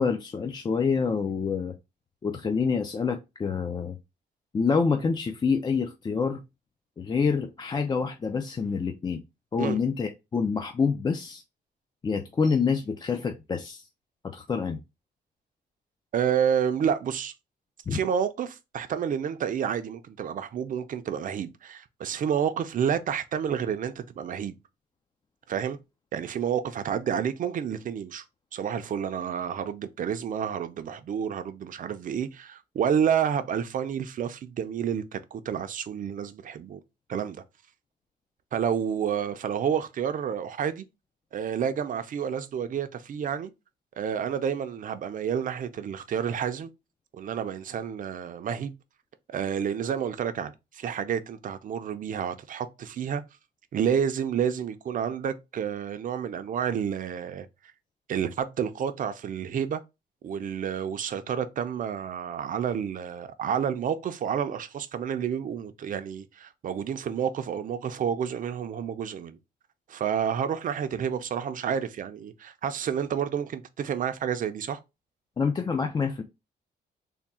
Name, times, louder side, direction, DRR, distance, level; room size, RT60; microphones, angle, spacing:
voice 1, 0.0-1.7 2.2-4.0 4.5-6.4 7.0-9.2 9.5-11.4 12.0-13.9 14.2-14.8 17.9-18.0 75.4-76.2, left 5 dB, 25° left, 0.3 m, -27 dB
voice 2, 16.1-17.3 17.9-24.6 25.5-25.8 26.1-28.2 28.5-36.8 37.1-37.4 38.5-40.8 41.3-43.5 44.0-46.7 47.1-48.7 49.3-53.2 53.7-57.5 58.1-59.8 60.2-69.4 69.9-74.8, right 8 dB, 50° right, 0.5 m, -29 dB
3.5 x 2.2 x 4.1 m
cardioid pair, 140°, 18 cm